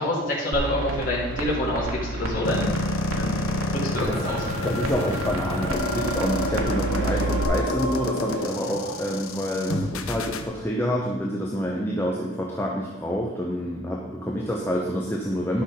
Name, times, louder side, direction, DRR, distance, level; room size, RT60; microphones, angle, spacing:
voice 1, 0.0-2.8 3.2-3.4 3.8-4.7 8.6-8.8, left 1 dB, 40° left, -6 dB, 2.3 m, -27 dB
sound 1, 0.5-7.4, right 2 dB, 85° right, 1.6 m, -31 dB
sound 2, 2.4-10.4, left 2 dB, 85° left, 0.8 m, -29 dB
sound 3, 4.1-9.7, right 1 dB, 40° right, 2.5 m, -35 dB
voice 2, 4.6-15.6, equal, 10° left, -2 dB, 0.8 m, -27 dB
11.0 x 6.0 x 5.2 m, 1.2 s
head